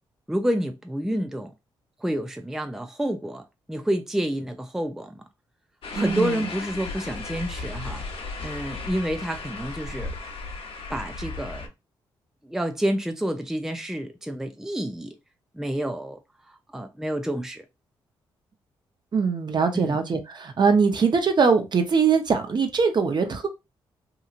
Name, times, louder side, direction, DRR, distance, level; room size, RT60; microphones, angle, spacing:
voice 1, 0.3-1.5 2.0-3.4 3.7-5.2 5.9-8.0 8.4-10.2 10.9-11.7 12.4-15.1 15.5-16.2 16.5-17.6 19.7-20.0, right 1 dB, 5° right, 0.5 m, -29 dB
sound 1, 5.8-11.7, left 3 dB, 65° left, 0.8 m, -35 dB
voice 2, 5.9-6.5 19.1-23.5, right 5 dB, 45° right, 0.8 m, -22 dB
2.8 x 2.6 x 2.5 m
supercardioid pair, 50°, 10 cm